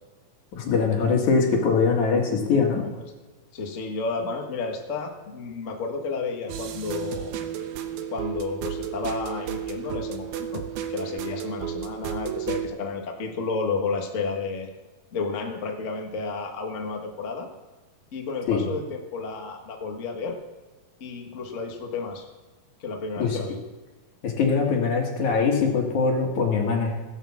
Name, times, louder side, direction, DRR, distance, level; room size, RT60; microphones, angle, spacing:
voice 1, 0.5-2.8 18.5-18.7 23.2-23.4 24.2-27.0, left 5 dB, 60° left, 1 dB, 3.1 m, -22 dB
voice 2, 3.5-7.3 8.1-10.6 10.9-14.7 15.1-17.5 18.1-20.4 21.0-22.3 22.8-23.6, left 4 dB, 80° left, 2 dB, 0.6 m, -31 dB
sound 1, 6.5-12.7, right 10 dB, 70° right, 2.2 m, -33 dB
16.0 x 6.9 x 7.2 m, 1.2 s
omnidirectional pair, 4.0 m